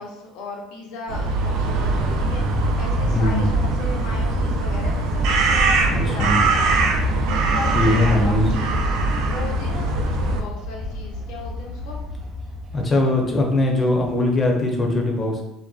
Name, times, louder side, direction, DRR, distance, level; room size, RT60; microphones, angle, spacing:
voice 1, 0.0-12.0, left 2 dB, 75° left, 0 dB, 0.6 m, -36 dB
sound 1, 1.1-10.4, right 2 dB, 75° right, 0.3 m, -21 dB
voice 2, 3.0-3.4 5.9-6.4 7.7-8.5 12.7-15.4, left 2 dB, 25° left, 1 dB, 0.5 m, -21 dB
Fowl, 9.4-14.7, left 2 dB, 35° right, 0.7 m, -35 dB
2.5 x 2.1 x 2.3 m, 0.89 s
cardioid pair, 120°, 0 cm